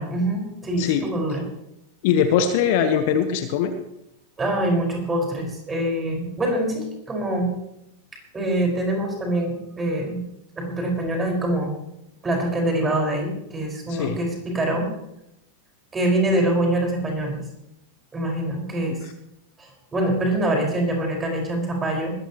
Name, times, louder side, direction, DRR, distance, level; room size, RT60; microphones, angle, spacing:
voice 1, 0.0-1.4 4.4-7.6 8.3-10.2 10.6-11.7 12.2-14.9 15.9-17.4 18.1-19.0 19.6-22.1, right 1 dB, 15° right, 0 dB, 5.2 m, -24 dB
voice 2, 2.0-3.7 13.9-14.2 18.9-19.0, left 8 dB, 50° left, 10 dB, 1.2 m, -21 dB
19.5 x 15.0 x 3.1 m, 0.84 s
figure-of-eight pair, 90°, 0 cm